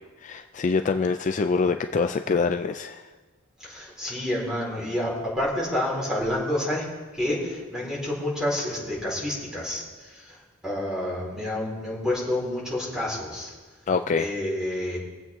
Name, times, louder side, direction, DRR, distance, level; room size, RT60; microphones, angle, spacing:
voice 1, 0.0-3.0 13.9-14.3, left 4 dB, 35° left, 8 dB, 0.4 m, -25 dB
voice 2, 3.6-6.8 7.1-13.5 14.2-15.0, left 1 dB, 5° right, -5 dB, 4.5 m, -29 dB
24.0 x 8.0 x 3.7 m, 1.3 s
head